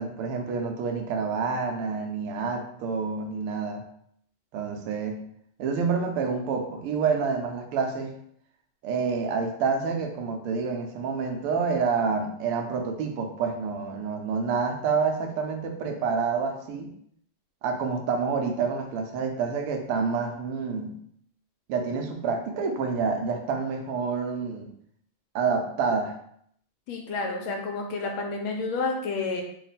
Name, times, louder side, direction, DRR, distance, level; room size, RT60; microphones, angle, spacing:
voice 1, 0.0-3.9 4.5-5.2 5.6-8.1 8.8-16.9 17.6-21.0 21.7-24.7 25.3-26.1, right 5 dB, 85° right, 4 dB, 1.5 m, -28 dB
voice 2, 26.9-29.4, left 3 dB, 75° left, 2 dB, 1.4 m, -30 dB
3.7 x 2.2 x 4.0 m, 0.68 s
omnidirectional pair, 2.3 m